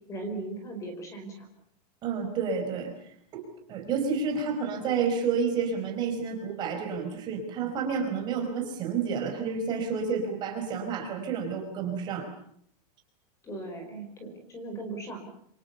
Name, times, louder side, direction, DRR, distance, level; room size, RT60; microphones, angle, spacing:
voice 1, 0.1-1.5 13.4-15.3, right 2 dB, 15° left, 6 dB, 4.9 m, -38 dB
voice 2, 2.0-2.9 3.3-12.3, right 5 dB, 20° right, 3 dB, 5.0 m, -30 dB
28.0 x 26.5 x 7.0 m, 0.69 s
supercardioid pair, 180°, 21 cm